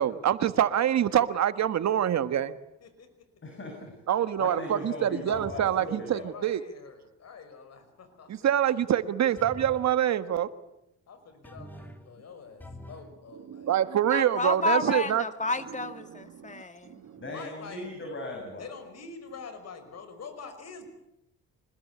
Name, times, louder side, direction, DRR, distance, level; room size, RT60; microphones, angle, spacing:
voice 1, 0.0-2.5 4.1-6.6 8.3-10.5 13.5-15.2 16.4-16.6 16.9-17.2, right 10 dB, 60° right, 12 dB, 1.6 m, -25 dB
voice 2, 2.8-3.3 4.7-8.5 10.3-10.4 11.1-13.8 17.3-17.9 18.6-20.9, left 5 dB, 55° left, 9 dB, 5.6 m, -46 dB
voice 3, 3.4-3.9 4.4-6.3 17.2-18.7, left 1 dB, 40° left, 2 dB, 7.7 m, -38 dB
sound 1, 5.3-5.8 9.4-9.9 11.4-12.1 12.6-13.1, left 1 dB, 5° left, 3.2 m, -45 dB
voice 4, 14.1-17.0, left 3 dB, 25° left, 9 dB, 2.2 m, -30 dB
25.5 x 20.5 x 8.5 m, 0.82 s
cardioid pair, 90°, 30 cm